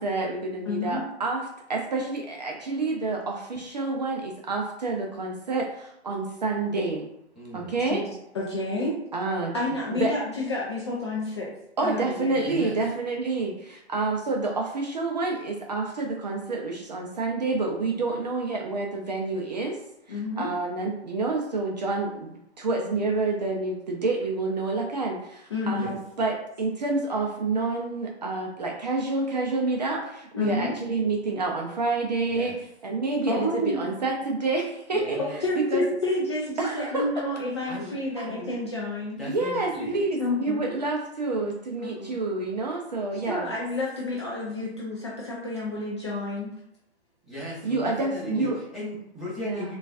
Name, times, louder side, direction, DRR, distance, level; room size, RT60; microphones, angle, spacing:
voice 1, 0.0-7.1 7.5-8.0 9.1-9.5 9.9-10.1 11.8-19.8 20.1-35.2 35.7-35.8 36.6-37.0 38.2-38.3 39.3-43.5 47.6-48.6 49.4-49.7, right 3 dB, 40° right, 0 dB, 0.4 m, -28 dB
voice 2, 0.7-1.1 7.9-8.1 8.3-9.0 9.5-11.5 11.8-12.4 20.1-20.5 25.5-25.9 30.3-30.7 33.3-33.8 35.4-39.2 39.8-39.9 40.2-40.7 41.8-42.2 43.3-46.5 48.3-48.4, left 2 dB, 25° left, -5 dB, 0.4 m, -30 dB
voice 3, 7.3-7.8 12.4-12.8 25.7-25.9 30.4-30.7 32.3-32.6 34.9-35.4 37.7-37.9 39.2-40.0 47.2-49.8, left 1 dB, ahead, -11 dB, 0.9 m, -37 dB
3.8 x 2.3 x 2.4 m, 0.82 s
figure-of-eight pair, 130°, 33 cm